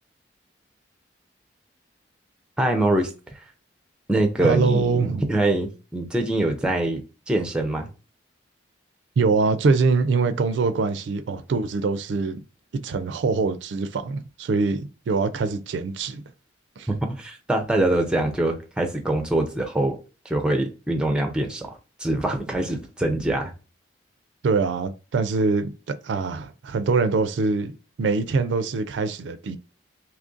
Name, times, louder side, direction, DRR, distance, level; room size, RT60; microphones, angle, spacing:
voice 1, 2.6-3.1 4.1-7.0 7.3-7.9 16.9-20.0 20.3-23.5, right 1 dB, 5° right, 0.4 m, -24 dB
voice 2, 4.4-5.2 9.2-12.4 12.8-16.2 16.8-16.9 24.4-27.7 28.0-29.6, right 4 dB, 75° right, 0.4 m, -24 dB
2.9 x 2.5 x 3.7 m
head